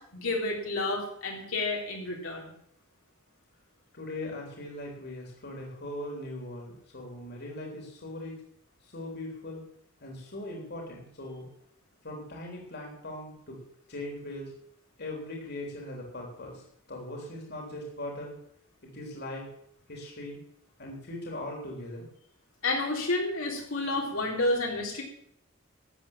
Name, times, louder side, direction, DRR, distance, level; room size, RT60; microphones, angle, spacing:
voice 1, 0.1-2.5 22.6-25.0, left 2 dB, 80° left, -1 dB, 3.9 m, -30 dB
voice 2, 3.9-8.4 8.8-9.6 10.0-11.5 12.0-13.6 13.9-14.5 15.0-18.4 18.8-19.5 19.9-20.4 20.8-22.1, left 1 dB, 55° left, 0 dB, 3.5 m, -40 dB
13.0 x 8.4 x 7.3 m, 0.68 s
head